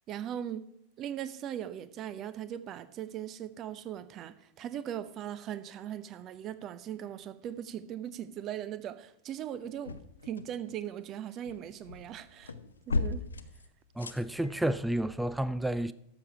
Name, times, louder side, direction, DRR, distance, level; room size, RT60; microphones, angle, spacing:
voice 1, 0.1-0.6 1.0-9.9 10.2-12.5 12.9-13.3, right 10 dB, 35° right, 0.7 m, -39 dB
sound 1, 9.5-10.8 11.1-14.8, left 3 dB, 75° left, 0.6 m, -37 dB
voice 2, 14.0-15.9, right 1 dB, 5° right, 0.4 m, -30 dB
12.5 x 7.3 x 4.8 m
figure-of-eight pair, 90°, 0 cm